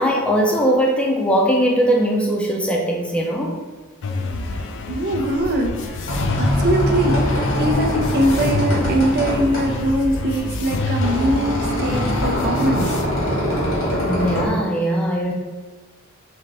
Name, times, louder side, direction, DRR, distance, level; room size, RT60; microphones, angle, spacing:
voice 1, 0.0-3.6 14.0-15.3, equal, 5° left, -1 dB, 0.5 m, -20 dB
sound 1, 4.0-13.0, left 2 dB, 60° left, 0.4 m, -27 dB
voice 2, 4.9-6.1 6.4-13.0, right 1 dB, 50° right, 3 dB, 0.5 m, -22 dB
sound 2, 5.8-14.5, left 1 dB, 90° left, 1.5 m, -23 dB
3.7 x 3.2 x 3.3 m, 1.3 s
head